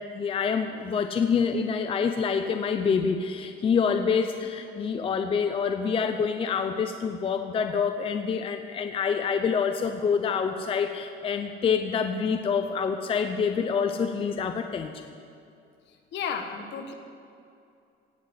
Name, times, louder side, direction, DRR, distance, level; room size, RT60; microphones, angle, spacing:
voice 1, 0.1-14.9, left 6 dB, 25° left, 6 dB, 0.5 m, -26 dB
voice 2, 16.1-16.9, left 6 dB, 60° left, 5 dB, 1.4 m, -32 dB
16.5 x 6.3 x 8.1 m, 2.5 s
cardioid pair, 160°, 20 cm